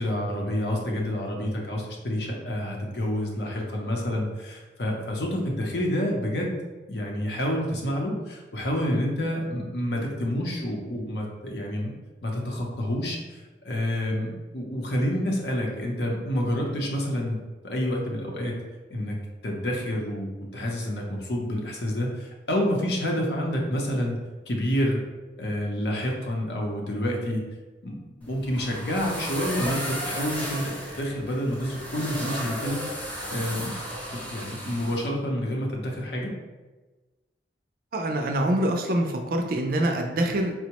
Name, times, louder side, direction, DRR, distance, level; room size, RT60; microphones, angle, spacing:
voice 1, 0.0-6.6 6.9-11.9 12.2-17.4 17.6-18.5 18.9-19.2 19.4-24.2 24.5-25.0 25.4-27.4 27.8-32.8 33.3-33.7 34.1-36.3, equal, 70° left, 0 dB, 0.7 m, -28 dB
sound 1, 28.2-35.1, equal, 10° left, 0.7 m, -34 dB
voice 2, 37.9-40.5, right 1 dB, 55° right, 3 dB, 0.4 m, -25 dB
4.4 x 2.1 x 2.9 m, 1.2 s
head